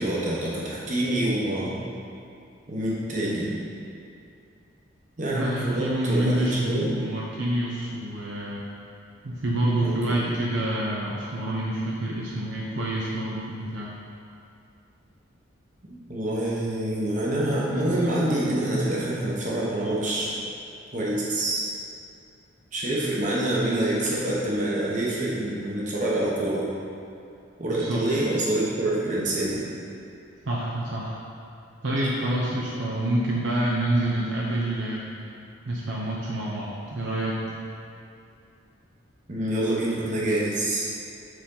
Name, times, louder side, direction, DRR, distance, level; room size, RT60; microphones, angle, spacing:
voice 1, 0.0-1.8 2.7-3.5 5.2-6.9 9.8-10.3 16.1-20.3 20.9-21.6 22.7-26.7 27.6-29.7 32.0-32.1 39.3-40.9, right 1 dB, 40° right, -6 dB, 1.1 m, -26 dB
voice 2, 5.3-8.6 9.2-13.9 27.6-28.0 30.4-31.2 31.8-35.2 35.7-37.5, right 1 dB, 65° right, -5 dB, 0.7 m, -27 dB
6.2 x 4.3 x 3.9 m, 2.6 s
head